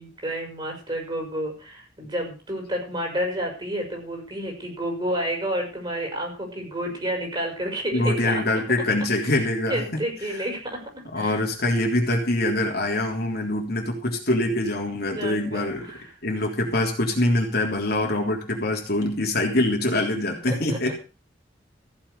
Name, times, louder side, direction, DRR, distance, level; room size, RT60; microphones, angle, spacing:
voice 1, 0.0-8.4 9.2-9.4 9.7-10.8 11.1-11.4 15.1-16.1 20.5-20.8, equal, 25° right, 0 dB, 5.4 m, -30 dB
voice 2, 7.9-10.0 11.1-15.9 16.2-20.9, left 1 dB, 60° left, 1 dB, 3.4 m, -24 dB
15.0 x 7.2 x 6.8 m, 0.35 s
head